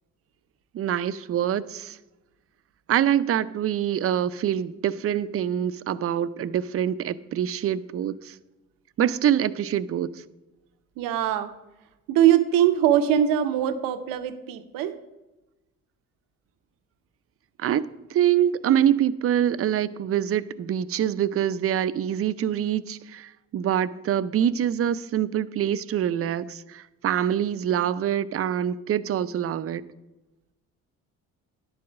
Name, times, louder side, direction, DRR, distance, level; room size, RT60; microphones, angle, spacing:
voice 1, 0.7-2.0 2.9-8.4 9.0-10.2 17.6-29.8, right 10 dB, 45° right, 0.5 m, -25 dB
voice 2, 11.0-11.5 12.1-15.0, right 11 dB, 85° right, 0.7 m, -22 dB
10.5 x 4.7 x 7.2 m
cardioid pair, 80°, 33 cm